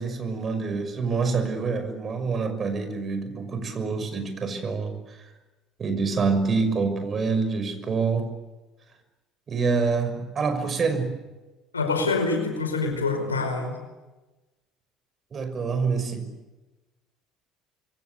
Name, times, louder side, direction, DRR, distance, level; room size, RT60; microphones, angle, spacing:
voice 1, 0.0-5.2 5.8-8.3 9.5-11.1 15.3-16.3, right 4 dB, 40° right, 8 dB, 6.1 m, -26 dB
voice 2, 11.7-13.8, left 3 dB, 90° left, 4 dB, 4.9 m, -26 dB
26.5 x 23.0 x 8.4 m, 1.1 s
hypercardioid pair, 60°, 0 cm